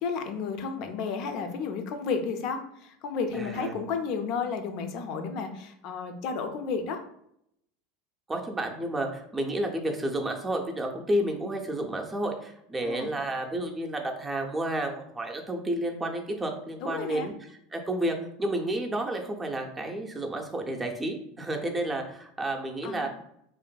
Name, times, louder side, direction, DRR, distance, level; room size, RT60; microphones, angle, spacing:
voice 1, 0.0-7.0 12.8-13.1 16.8-17.3 22.8-23.1, left 5 dB, 60° left, 6 dB, 0.4 m, -32 dB
voice 2, 3.3-3.7 8.3-17.3 17.7-23.1, right 1 dB, 15° right, 2 dB, 0.5 m, -31 dB
2.6 x 2.5 x 2.2 m, 0.72 s
hypercardioid pair, 100°, 0 cm